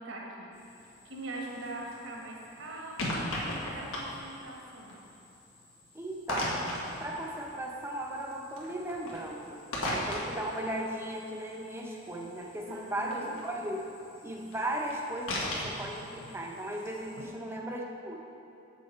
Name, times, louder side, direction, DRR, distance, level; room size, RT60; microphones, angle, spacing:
voice 1, 0.0-5.0 9.1-9.2 12.7-13.3 17.2-17.6, right 2 dB, 65° right, -1 dB, 1.2 m, -43 dB
sound 1, 0.5-17.3, left 1 dB, 90° left, 1.5 m, -40 dB
voice 2, 5.9-6.6 7.0-9.6 9.9-13.8 14.2-18.3, right 1 dB, 10° right, -1 dB, 0.7 m, -37 dB
7.5 x 6.5 x 4.4 m, 2.9 s
head